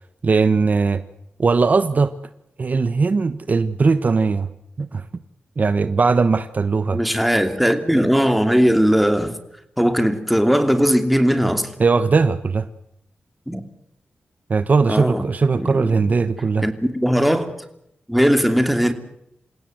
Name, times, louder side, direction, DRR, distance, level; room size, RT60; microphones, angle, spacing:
voice 1, 0.2-1.0 1.4-2.1 2.6-4.5 4.8-5.0 5.6-7.0 11.8-12.7 14.5-16.7, right 4 dB, 50° right, 1.1 m, -19 dB
voice 2, 6.9-9.3 9.8-11.7 13.5-13.6 14.9-15.3 15.5-16.2 16.6-17.5 18.1-18.9, equal, ahead, 2.8 m, -19 dB
28.5 x 17.0 x 7.9 m
wide cardioid pair, 80°, 4 cm